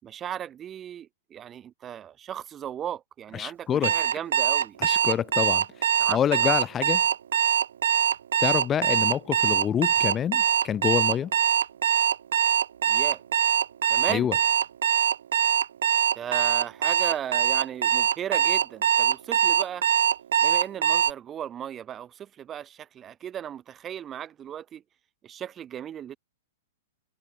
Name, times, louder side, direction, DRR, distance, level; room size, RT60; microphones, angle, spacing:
voice 1, 0.0-4.8 6.0-6.5 12.9-13.2 13.9-14.3 16.1-19.8 20.4-24.8 25.2-26.2, right 10 dB, 25° right, 6.0 m, -36 dB
voice 2, 3.3-3.9 4.8-7.0 8.4-11.3 14.1-14.3, left 9 dB, 20° left, 0.8 m, -27 dB
Alarm, 3.8-21.1, right 9 dB, 75° right, 1.4 m, -22 dB
hypercardioid pair, 120°, 0 cm